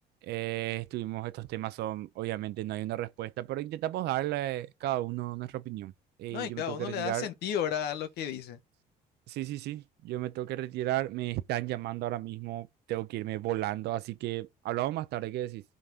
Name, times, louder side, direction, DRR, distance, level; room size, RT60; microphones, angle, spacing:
voice 1, 0.2-5.9 6.2-7.3 9.3-15.6, right 15 dB, 80° right, 0.7 m, -34 dB
voice 2, 6.3-8.6, left 9 dB, 75° left, 1.3 m, -33 dB
11.0 x 4.2 x 4.9 m
cardioid pair, 110°, 17 cm